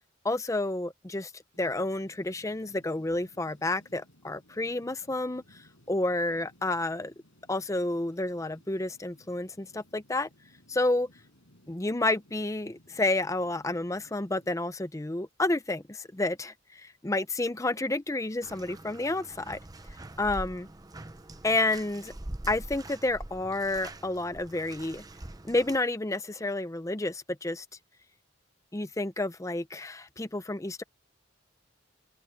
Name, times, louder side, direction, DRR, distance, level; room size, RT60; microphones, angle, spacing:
voice 1, 0.2-1.3 1.6-5.4 5.9-7.1 7.5-10.3 10.7-11.1 11.7-19.6 20.2-20.7 21.4-22.1 22.5-25.0 25.4-27.6 28.7-30.8, left 2 dB, 15° left, 0.6 m, -30 dB
sound 1, 1.5-14.5, left 1 dB, 85° left, 7.3 m, -61 dB
Bathtub (filling or washing), 18.4-25.8, right 1 dB, 20° right, 0.7 m, -44 dB
open air
head